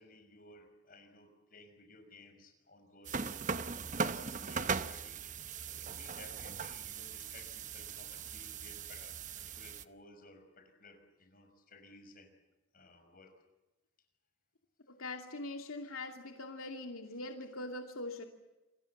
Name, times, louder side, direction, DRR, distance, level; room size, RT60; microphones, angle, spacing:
voice 1, 0.0-3.6 3.9-5.2 5.6-12.3 12.7-13.3, left 2 dB, 45° left, 5 dB, 5.9 m, -57 dB
sound 1, 3.0-9.8, right 5 dB, 40° right, 0.9 m, -39 dB
voice 2, 15.0-18.2, left 2 dB, 90° left, 3 dB, 2.6 m, -42 dB
29.0 x 22.0 x 7.3 m, 1.1 s
head